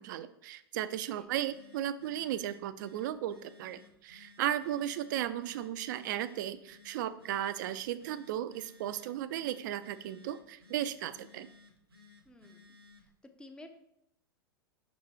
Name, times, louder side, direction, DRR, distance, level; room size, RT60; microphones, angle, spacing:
voice 1, 0.0-11.5, right 11 dB, 55° right, 13 dB, 0.4 m, -35 dB
Telephone, 1.2-13.2, left 4 dB, 85° right, 0.8 m, -59 dB
voice 2, 12.3-12.8 13.0-13.1 13.4-13.7, left 2 dB, 5° left, 6 dB, 0.6 m, -52 dB
5.3 x 3.9 x 4.7 m, 0.80 s
figure-of-eight pair, 95°, 12 cm